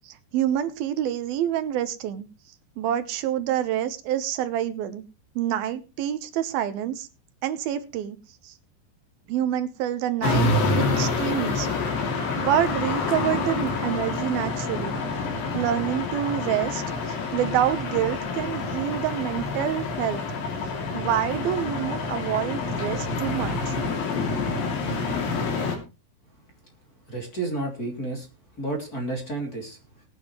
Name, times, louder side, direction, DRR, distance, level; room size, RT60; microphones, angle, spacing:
voice 1, 0.0-2.3 2.8-5.0 5.4-7.1 7.4-8.2 8.4-8.5 9.3-11.7 12.4-15.0 15.5-20.2 20.9-23.8, right 11 dB, 70° right, 11 dB, 2.5 m, -27 dB
sound 1, 10.2-25.8, left 3 dB, 55° left, 4.2 m, -27 dB
voice 2, 27.1-28.3 28.6-29.8, right 2 dB, 25° left, 2 dB, 2.8 m, -31 dB
19.0 x 9.7 x 3.1 m, 0.29 s
omnidirectional pair, 5.2 m